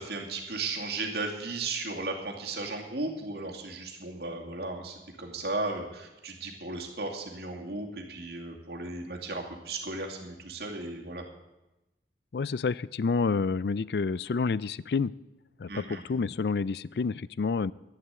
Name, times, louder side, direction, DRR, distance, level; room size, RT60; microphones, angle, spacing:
voice 1, 0.0-11.2 15.7-16.0, right 3 dB, 60° right, 1 dB, 2.5 m, -35 dB
voice 2, 12.3-15.1 15.6-17.7, left 4 dB, 65° left, 20 dB, 0.4 m, -29 dB
11.5 x 11.0 x 8.2 m, 0.99 s
head